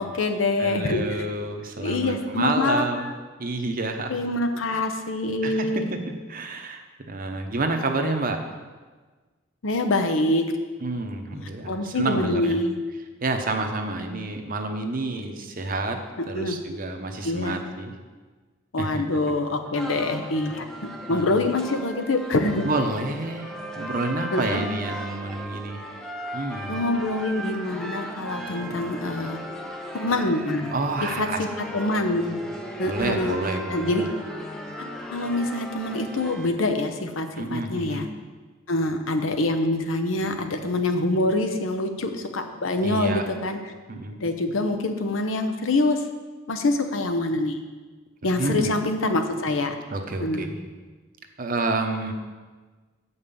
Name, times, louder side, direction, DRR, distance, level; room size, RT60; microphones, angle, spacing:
voice 1, 0.0-1.1 1.8-3.1 4.1-5.9 9.6-10.5 11.3-12.8 16.2-16.6 17.2-17.6 18.7-22.7 24.3-24.7 26.7-29.4 29.9-30.7 31.0-31.5 31.7-32.4 32.8-33.4 33.7-34.1 35.1-38.1 38.7-43.6 44.2-46.0 46.5-47.6 48.2-49.7 50.2-50.5, left 2 dB, 75° left, 6 dB, 0.9 m, -25 dB
voice 2, 0.6-3.1 3.4-4.1 4.7-4.8 5.4-6.0 6.3-8.4 10.8-12.6 13.2-16.0 16.3-17.9 18.8-19.0 21.1-21.4 22.6-25.8 26.3-26.8 30.7-31.4 32.8-34.1 37.4-38.0 42.8-43.2 43.9-44.2 48.4-48.7 49.9-50.6 51.4-52.1, right 2 dB, 45° right, 5 dB, 0.9 m, -29 dB
sound 1, 19.7-36.5, equal, 5° left, 0.8 m, -37 dB
7.9 x 5.6 x 7.0 m, 1.4 s
head